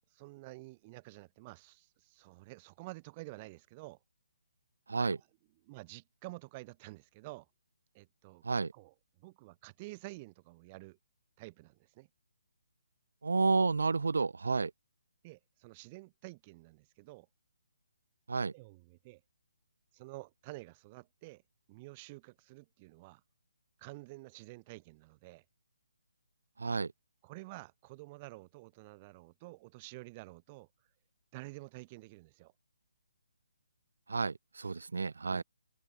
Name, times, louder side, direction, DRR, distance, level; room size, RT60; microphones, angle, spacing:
voice 1, 0.1-4.0 5.6-7.5 7.9-8.4 8.7-11.0 11.4-12.1 15.2-17.3 18.5-19.2 19.9-21.4 21.7-23.2 23.8-25.4 27.2-30.7 31.3-32.5, right 23 dB, 20° right, 3.3 m, -50 dB
voice 2, 13.2-14.7 18.3-18.5 26.6-26.9 34.1-35.4, right 4 dB, 85° right, 0.9 m, -31 dB
hypercardioid pair, 175°, 0 cm